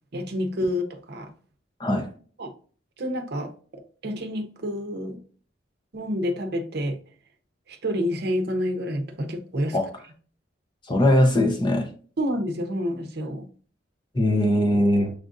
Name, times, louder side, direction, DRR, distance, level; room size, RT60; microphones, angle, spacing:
voice 1, 0.1-1.3 2.4-2.5 3.0-5.2 5.9-7.0 7.7-9.8 12.2-13.5, equal, 55° right, 0.7 m, -28 dB
voice 2, 10.9-11.9 14.1-15.1, left 1 dB, 25° left, 0.7 m, -20 dB
6.5 x 2.5 x 2.5 m
head